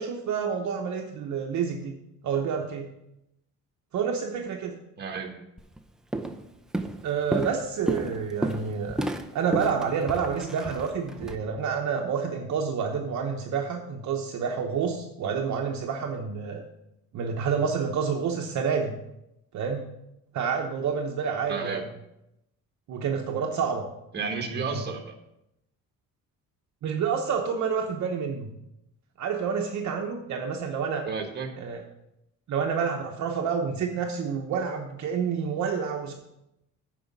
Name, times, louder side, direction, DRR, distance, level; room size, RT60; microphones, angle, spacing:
voice 1, 0.0-1.9 2.2-2.9 3.9-4.8 7.0-9.0 9.3-16.6 17.1-18.9 19.5-19.9 20.3-21.8 22.9-23.8 24.5-24.8 26.8-28.5 29.2-31.1 31.6-31.8 32.5-36.1, right 6 dB, 55° right, 2 dB, 1.0 m, -28 dB
voice 2, 5.0-5.3 21.5-21.8 24.1-25.1 31.1-31.5, right 5 dB, 30° right, 3 dB, 1.6 m, -32 dB
Walk footsteps, 5.6-5.8 6.1-6.5 6.7-11.4, right 1 dB, ahead, 0.5 m, -31 dB
9.3 x 5.0 x 7.2 m, 0.85 s
cardioid pair, 140°, 34 cm